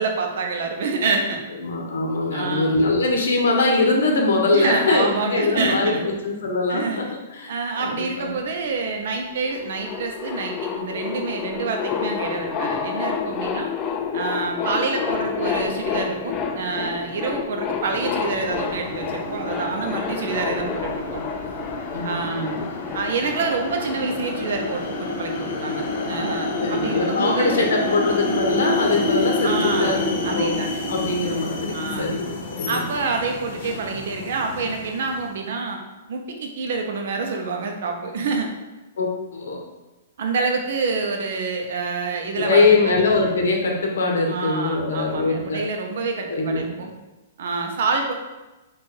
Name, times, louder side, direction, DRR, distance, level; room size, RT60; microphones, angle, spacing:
voice 1, 0.0-1.4 2.3-2.8 4.5-6.1 6.7-7.0 7.5-13.7 14.1-21.2 22.0-22.5 22.9-27.6 29.4-30.8 31.7-32.1 32.7-35.8 36.1-38.5 40.2-43.0 44.3-46.9 47.4-48.1, right 4 dB, 55° right, 3 dB, 0.7 m, -27 dB
voice 2, 1.6-7.0 7.3-7.5 7.8-8.3 21.9-22.8 26.6-30.5 30.9-32.9 39.0-39.6 42.4-45.6 46.3-46.7, left 3 dB, 85° left, 0 dB, 1.2 m, -22 dB
sound 1, 9.2-9.3 9.4-25.4, left 6 dB, 20° left, 0.3 m, -29 dB
sound 2, 17.8-35.3, left 2 dB, 40° left, 0.7 m, -29 dB
4.5 x 2.5 x 4.6 m, 1.1 s
hypercardioid pair, 175°, 0 cm